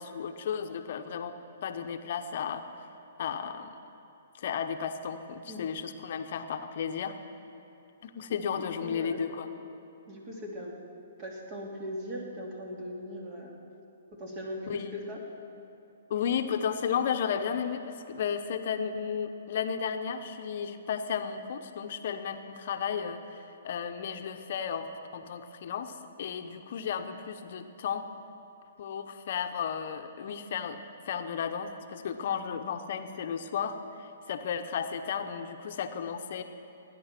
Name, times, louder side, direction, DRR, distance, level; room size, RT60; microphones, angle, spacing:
voice 1, 0.0-1.3 1.6-2.6 3.2-3.7 4.4-7.2 8.0-9.5 14.7-14.9 16.1-28.0 28.8-30.8 31.1-36.4, left 7 dB, 55° left, 7 dB, 0.8 m, -33 dB
voice 2, 8.5-9.2 10.1-10.7 11.2-13.6 14.2-15.2, equal, 35° right, -1 dB, 2.9 m, -39 dB
20.0 x 9.7 x 5.9 m, 2.9 s
hypercardioid pair, 145°, 0 cm